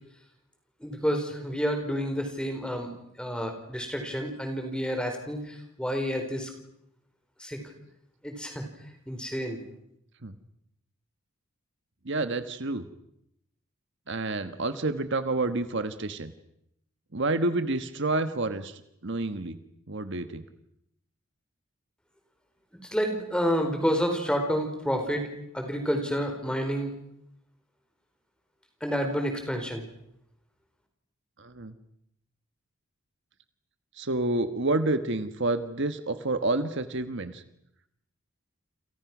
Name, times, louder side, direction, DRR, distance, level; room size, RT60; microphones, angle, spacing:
voice 1, 0.8-2.9 3.2-6.5 7.4-7.6 8.2-8.6 9.1-9.6 22.9-25.3 25.5-26.9 28.8-29.9, equal, 5° left, 4 dB, 4.5 m, -29 dB
voice 2, 12.0-12.8 14.1-16.3 17.1-19.6 19.9-20.4 31.4-31.7 34.0-37.4, right 2 dB, 55° right, 10 dB, 1.4 m, -29 dB
29.5 x 27.5 x 6.2 m, 0.79 s
head